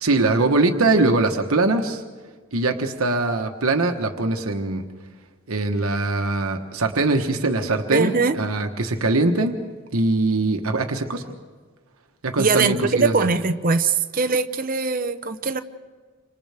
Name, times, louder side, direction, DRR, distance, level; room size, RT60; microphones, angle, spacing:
voice 1, 0.0-2.0 2.5-4.8 5.5-9.5 9.9-11.2 12.2-13.3, right 2 dB, 80° right, 4 dB, 1.2 m, -22 dB
voice 2, 7.9-8.4 12.4-15.6, right 4 dB, 40° right, 8 dB, 0.8 m, -21 dB
28.5 x 26.0 x 3.5 m, 1.5 s
head